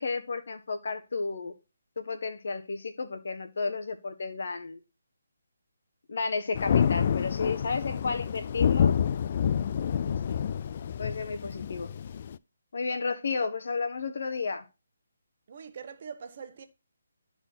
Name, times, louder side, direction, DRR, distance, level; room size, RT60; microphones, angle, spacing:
voice 1, 0.0-1.5 2.0-4.8 6.1-9.0 10.0-10.4 11.0-11.9 12.7-14.6, left 4 dB, 60° left, 1.6 m, -32 dB
Thunder, 6.5-12.4, left 8 dB, 40° left, 0.3 m, -28 dB
voice 2, 15.5-16.6, right 6 dB, 45° right, 1.1 m, -43 dB
12.0 x 4.5 x 4.4 m
hypercardioid pair, 160°, 0 cm